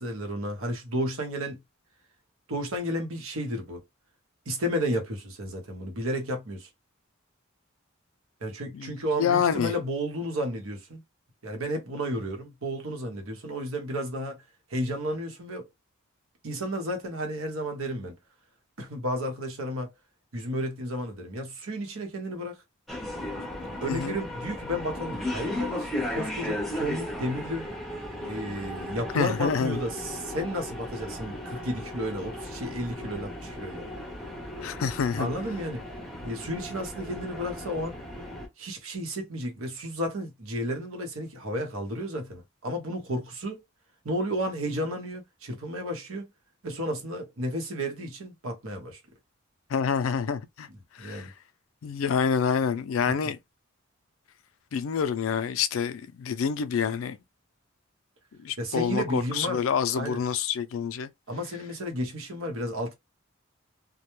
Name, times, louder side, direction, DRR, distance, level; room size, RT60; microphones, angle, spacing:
voice 1, 0.0-1.6 2.5-3.8 4.5-6.7 8.4-11.0 11.4-14.4 14.7-15.7 16.4-18.2 18.8-19.9 20.3-22.6 23.6-27.7 28.2-33.9 35.2-35.8 36.2-38.0 38.6-43.6 44.0-46.3 46.6-49.0 51.0-51.3 53.1-53.2 58.6-59.6 59.9-60.2 61.3-62.9, equal, 80° right, 0.9 m, -32 dB
voice 2, 9.2-9.7 23.8-24.2 29.1-29.8 34.6-35.3 49.7-50.7 51.0-51.3 51.8-53.4 54.7-57.2 58.4-61.1, left 7 dB, 75° left, 0.4 m, -27 dB
sound 1, 22.9-38.5, left 1 dB, ahead, 0.6 m, -36 dB
2.2 x 2.1 x 3.0 m
head